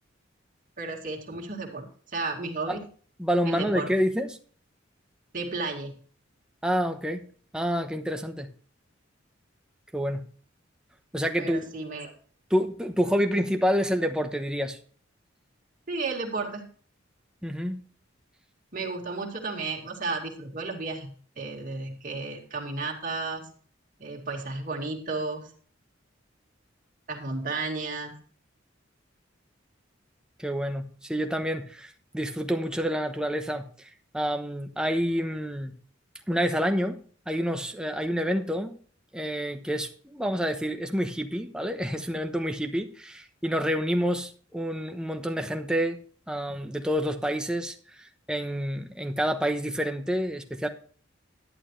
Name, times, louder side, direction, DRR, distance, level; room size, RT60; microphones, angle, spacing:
voice 1, 0.8-2.8 3.4-3.9 5.3-6.0 11.4-12.1 15.9-16.7 18.7-23.4 24.0-25.5 27.1-28.1, right 3 dB, 45° right, 1 dB, 2.4 m, -33 dB
voice 2, 3.2-4.4 6.6-7.3 7.5-8.5 9.9-10.2 11.1-11.6 12.5-14.8 17.4-17.8 30.4-33.9 34.1-35.7 36.3-37.0 37.3-38.8 39.1-46.0 46.3-47.7 48.3-50.7, equal, 5° right, 4 dB, 1.0 m, -28 dB
11.5 x 11.0 x 3.3 m, 0.44 s
head